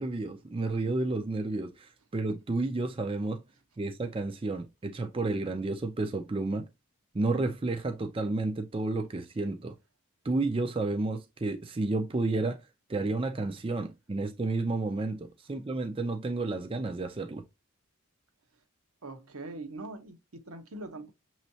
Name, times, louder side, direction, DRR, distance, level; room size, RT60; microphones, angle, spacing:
voice 1, 0.0-3.4 3.8-6.7 7.1-9.7 10.2-12.6 12.9-17.4, right 2 dB, 25° right, 0.4 m, -31 dB
voice 2, 19.0-21.1, right 2 dB, 75° right, 0.9 m, -42 dB
6.3 x 3.1 x 2.7 m
head